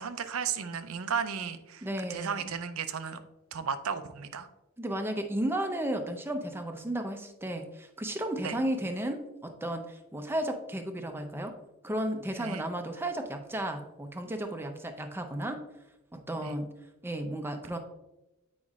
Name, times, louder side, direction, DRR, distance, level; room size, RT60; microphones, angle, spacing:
voice 1, 0.0-3.2 3.5-4.5 8.4-8.6 12.4-12.6 16.4-16.6, right 6 dB, 65° right, 10 dB, 0.5 m, -34 dB
voice 2, 1.8-2.5 4.8-11.5 11.8-15.6 16.1-16.7 17.0-17.8, right 1 dB, 10° right, 5 dB, 0.5 m, -34 dB
8.8 x 5.2 x 2.4 m, 0.98 s
head